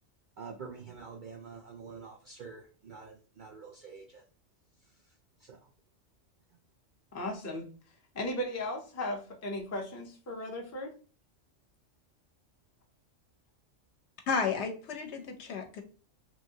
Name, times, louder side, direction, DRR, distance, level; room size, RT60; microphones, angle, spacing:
voice 1, 0.4-4.2 4.8-5.6, right 5 dB, 65° right, 1 dB, 0.4 m, -47 dB
voice 2, 7.1-7.7 8.1-10.9, left 1 dB, 25° left, 2 dB, 0.3 m, -36 dB
voice 3, 14.3-15.8, left 5 dB, 70° left, 4 dB, 0.9 m, -32 dB
3.1 x 2.7 x 2.7 m, 0.38 s
omnidirectional pair, 1.3 m